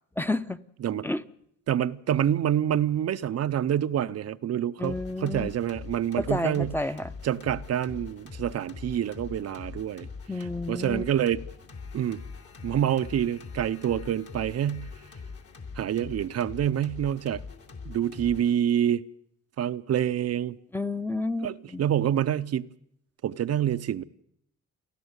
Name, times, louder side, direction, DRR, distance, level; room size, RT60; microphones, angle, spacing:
voice 1, 0.2-0.6 1.0-1.2 4.8-5.5 6.2-7.1 10.3-11.0 20.7-21.8, left 2 dB, 5° left, 0.8 m, -30 dB
voice 2, 1.7-6.8 7.2-10.1 10.4-11.4 11.9-12.2 12.6-14.9 15.8-17.4 17.8-19.0 19.6-20.6 21.4-22.7 23.2-24.0, right 10 dB, 55° right, 0.7 m, -27 dB
sound 1, 4.8-18.5, left 4 dB, 50° left, 3.1 m, -43 dB
30.0 x 11.5 x 8.1 m
cardioid pair, 90°, 30 cm